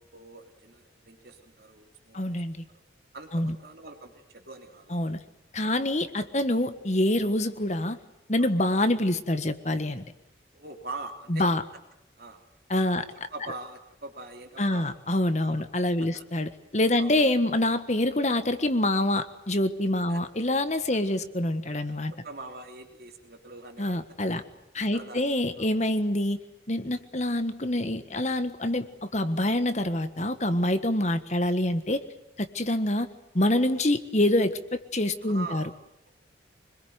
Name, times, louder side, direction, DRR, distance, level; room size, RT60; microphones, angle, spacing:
voice 1, 0.0-2.8 3.1-5.0 5.6-5.7 8.4-8.5 10.5-11.4 12.2-12.4 13.0-14.9 15.4-15.6 16.1-16.2 17.0-17.2 20.1-20.2 20.9-21.1 21.8-23.9 24.9-25.3 25.6-25.7 35.2-35.7, right 3 dB, 55° right, 3 dB, 3.3 m, -43 dB
voice 2, 2.1-2.6 3.3-3.5 4.9-5.2 5.5-8.0 8.3-10.0 11.3-11.6 12.7-13.0 14.6-22.1 23.8-24.4 24.7-26.4 26.7-32.0 32.4-33.1 33.3-35.6, left 1 dB, 35° left, 10 dB, 1.5 m, -26 dB
25.5 x 21.5 x 9.5 m, 0.81 s
head